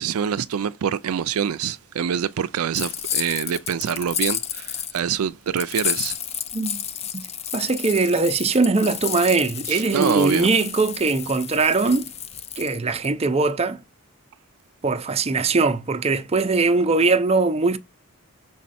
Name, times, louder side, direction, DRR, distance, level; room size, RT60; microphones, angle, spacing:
voice 1, 0.0-6.2 9.7-10.5, right 8 dB, 75° right, 0.4 m, -25 dB
sound 1, 2.7-5.0 5.6-13.1, left 9 dB, 30° left, 0.4 m, -31 dB
voice 2, 7.5-12.1 12.6-13.8 14.8-17.8, right 3 dB, 30° right, 0.6 m, -21 dB
6.3 x 4.2 x 4.2 m
head